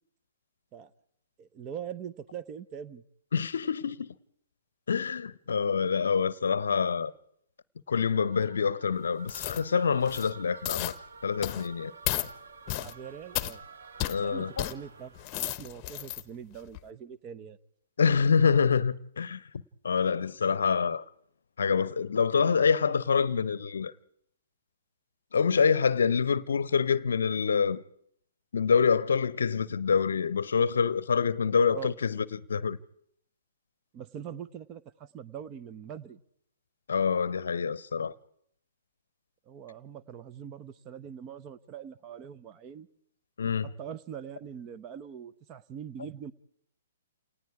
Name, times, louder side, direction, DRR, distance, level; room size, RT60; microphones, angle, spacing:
voice 1, 1.4-3.0 12.8-13.6 14.2-17.6 31.7-31.9 33.9-36.2 39.5-42.9 43.6-46.3, right 8 dB, 30° right, 0.9 m, -42 dB
voice 2, 3.3-4.1 4.9-7.1 7.9-10.9 11.2-11.9 14.1-14.7 18.0-19.4 19.8-21.0 21.6-23.9 25.3-27.8 28.5-32.8 36.9-38.1 43.4-43.7, left 6 dB, 65° left, 0.7 m, -26 dB
sound 1, 8.1-15.4, right 5 dB, 65° right, 1.2 m, -50 dB
sound 2, 9.3-9.6 10.0-10.3 10.6-11.0 11.4-11.7 12.0-12.3 12.7-12.9 13.3-13.5 14.0-14.2 14.6-14.7 15.1-16.2 16.7-16.8, left 14 dB, 30° left, 0.9 m, -33 dB
29.0 x 18.5 x 4.8 m
figure-of-eight pair, 120°, 0 cm